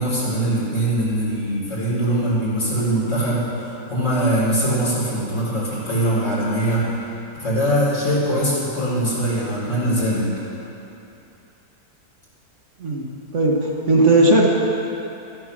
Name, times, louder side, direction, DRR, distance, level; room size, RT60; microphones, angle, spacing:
voice 1, 0.0-6.9 7.4-10.3, right 1 dB, 55° left, -8 dB, 3.9 m, -22 dB
voice 2, 13.3-14.5, right 2 dB, 50° right, -2 dB, 1.4 m, -16 dB
12.5 x 8.8 x 6.1 m, 2.9 s
omnidirectional pair, 1.6 m